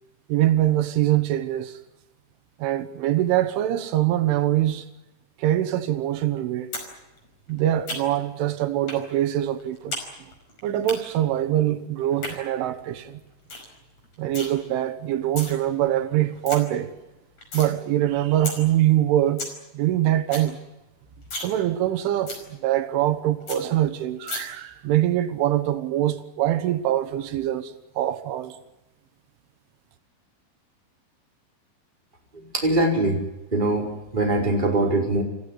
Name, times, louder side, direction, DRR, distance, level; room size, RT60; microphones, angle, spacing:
voice 1, 0.3-1.8 2.6-4.9 5.4-6.7 7.5-10.0 10.6-13.2 14.2-16.9 17.5-19.5 19.7-20.6 21.3-28.6, right 13 dB, 85° right, 3.8 m, -23 dB
sound 1, 6.7-6.9 7.2-8.3 8.9-9.0 9.4-10.1 10.3-10.9 12.0-12.3 12.8-12.9 13.2-13.3 13.5-13.7 14.0-14.5 15.1-15.5 16.0-16.1 16.2-16.6 17.0-17.7 18.1-18.2 18.4-18.6 18.9-19.0 19.2-19.5 19.9-20.0 20.2-20.5 20.8-20.9 21.2-21.5 21.8-21.9 22.3-22.4 22.8-22.9 23.1-23.2 23.5-23.6 24.3-24.4, left 3 dB, 35° left, 6.0 m, -33 dB
voice 2, 32.3-33.2 33.5-35.2, right 2 dB, 10° right, 4.4 m, -22 dB
28.5 x 15.5 x 9.9 m
omnidirectional pair, 5.4 m